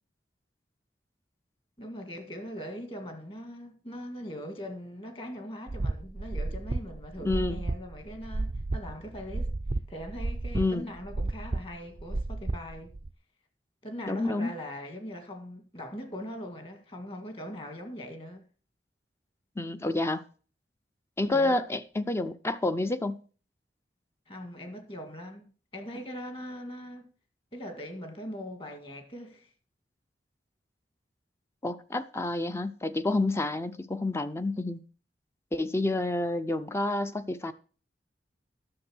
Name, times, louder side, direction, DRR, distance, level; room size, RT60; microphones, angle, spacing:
voice 1, 1.8-9.5 9.9-12.9 13.8-18.5 21.3-21.6 24.3-27.1 27.5-29.5, equal, 30° left, 1.8 m, -41 dB
sound 1, 5.7-13.1, right 2 dB, 35° right, 0.4 m, -33 dB
voice 2, 7.2-7.6 10.5-10.9 14.1-14.5 19.6-20.2 21.2-23.2 31.6-34.8 35.5-37.5, left 2 dB, 15° left, 0.5 m, -29 dB
11.0 x 6.8 x 6.2 m
head